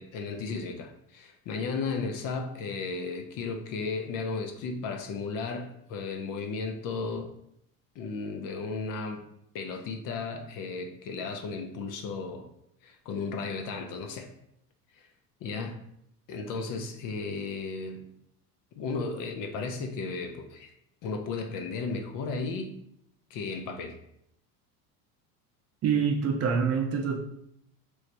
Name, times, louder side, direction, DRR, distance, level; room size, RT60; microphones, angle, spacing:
voice 1, 0.0-7.3 8.0-9.2 9.5-12.5 12.8-14.3 15.0-15.1 15.4-15.8 16.3-18.0 18.8-20.7 21.0-22.8 23.3-24.0, left 4 dB, 45° left, 0.5 m, -34 dB
voice 2, 25.8-27.2, right 6 dB, 35° right, 0.5 m, -26 dB
3.1 x 3.1 x 2.6 m
hypercardioid pair, 90°, 46 cm